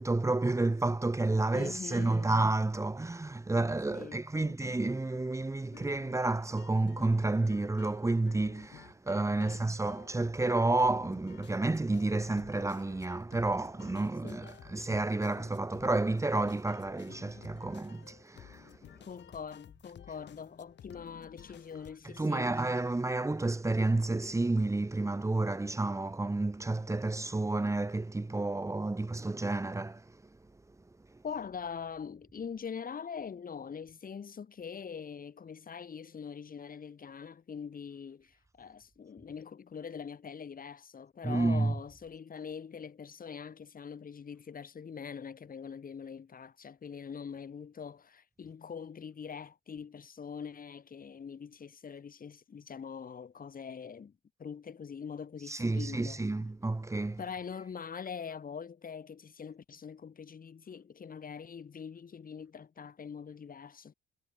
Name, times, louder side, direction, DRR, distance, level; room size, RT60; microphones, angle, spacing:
voice 1, 0.0-18.8 22.0-30.2 41.2-41.7 55.4-57.2, right 2 dB, 15° right, 1.4 m, -30 dB
voice 2, 1.5-2.3 3.9-4.6 9.4-9.7 14.2-14.4 19.0-22.6 31.2-56.2 57.2-63.9, left 6 dB, 45° left, 6.6 m, -43 dB
sound 1, 5.7-21.9, left 10 dB, 65° left, 2.3 m, -54 dB
cardioid pair, 90°, 20 cm